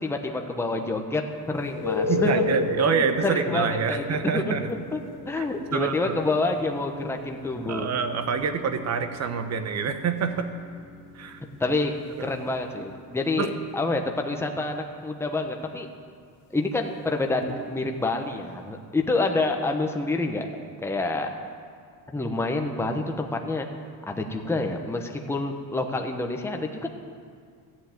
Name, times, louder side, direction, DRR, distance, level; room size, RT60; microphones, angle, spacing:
voice 1, 0.0-2.4 3.0-5.0 5.3-7.9 11.6-11.9 12.2-15.9 16.5-20.5 20.8-21.3 22.1-23.7 24.1-26.9, left 2 dB, 5° left, 3 dB, 0.9 m, -28 dB
sound 1, 1.6-13.2 17.4-17.5, left 2 dB, 65° left, 1.7 m, -34 dB
voice 2, 2.1-4.7 5.4-5.5 5.7-6.2 7.7-10.5 11.1-11.4 12.2-12.3 13.4-13.5, right 6 dB, 40° right, 9 dB, 1.0 m, -26 dB
14.0 x 7.2 x 9.3 m, 2.1 s
cardioid pair, 140°, 41 cm